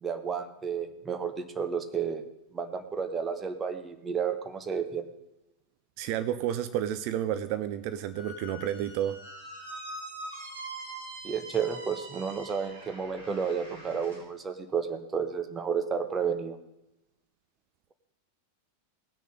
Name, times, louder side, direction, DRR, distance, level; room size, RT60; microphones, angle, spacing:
voice 1, 0.0-2.2 2.5-5.0 11.2-16.6, right 6 dB, 20° right, 8 dB, 1.2 m, -31 dB
voice 2, 6.0-9.2, right 11 dB, 45° right, 12 dB, 0.5 m, -31 dB
Squeak, 8.1-14.2, right 2 dB, 70° right, 4.3 m, -43 dB
18.5 x 6.6 x 5.3 m, 0.92 s
figure-of-eight pair, 90°, 0 cm